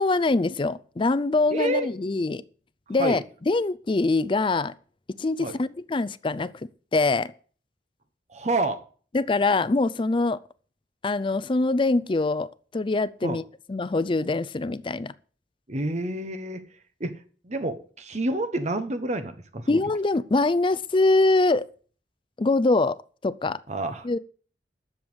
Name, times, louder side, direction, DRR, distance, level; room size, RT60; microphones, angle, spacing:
voice 1, 0.0-2.4 2.9-4.7 5.2-6.5 6.9-7.3 9.1-10.4 11.0-13.4 13.7-15.1 19.7-21.7 22.4-23.0 23.2-23.6 24.0-24.2, left 3 dB, 30° left, 0.4 m, -23 dB
voice 2, 1.5-1.9 3.0-3.2 5.4-5.6 8.3-8.8 13.2-13.4 15.7-16.6 17.0-19.8 23.7-24.1, right 2 dB, 40° right, 1.2 m, -28 dB
11.0 x 7.2 x 8.0 m
head